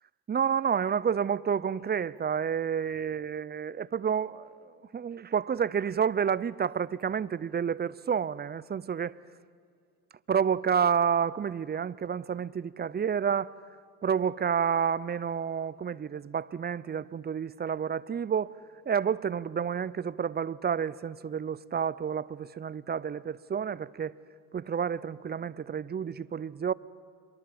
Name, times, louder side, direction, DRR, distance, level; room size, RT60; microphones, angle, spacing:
voice 1, 0.3-9.1 10.3-13.6 14.0-18.6 18.9-24.1 24.5-26.7, right 7 dB, 25° right, 0.7 m, -29 dB
25.0 x 23.0 x 7.9 m
hypercardioid pair, 65°, 42 cm